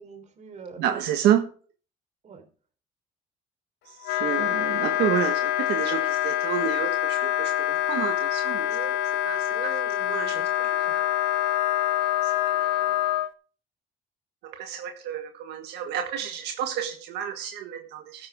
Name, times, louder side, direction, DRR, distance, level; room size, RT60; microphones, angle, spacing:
voice 1, 0.0-0.8 2.2-2.5 8.7-8.9 9.5-11.0, right 5 dB, 45° right, 7 dB, 4.2 m, -43 dB
voice 2, 0.8-1.5 4.0-8.7 9.2-9.5 10.1-10.4 10.9-11.1 12.2-13.0 14.5-18.3, right 10 dB, 80° right, 4 dB, 1.7 m, -29 dB
Wind instrument woodwind instrument, 4.0-13.3, left 13 dB, 85° left, 1.2 m, -25 dB
13.5 x 11.0 x 3.7 m, 0.40 s
cardioid pair, 110°, 17 cm